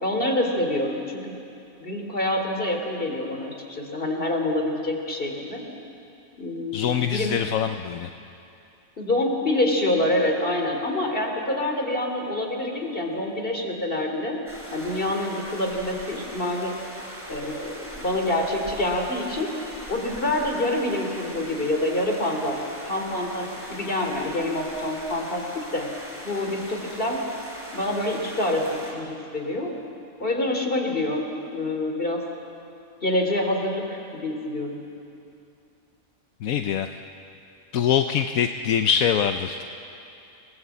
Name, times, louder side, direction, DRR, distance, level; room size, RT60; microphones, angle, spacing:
voice 1, 0.0-1.4 1.8-5.6 6.4-7.4 9.0-14.4 14.7-16.7 17.3-19.5 19.9-22.6 22.8-25.9 26.2-27.2 27.7-29.7 30.2-32.2 33.0-34.8, left 1 dB, 40° left, 2 dB, 3.3 m, -26 dB
voice 2, 6.7-8.1 36.4-36.9 37.7-39.6, left 8 dB, 80° left, 7 dB, 1.2 m, -23 dB
sound 1, 14.5-28.9, equal, 10° right, 4.6 m, -40 dB
28.0 x 19.0 x 8.4 m, 2.7 s
omnidirectional pair, 1.4 m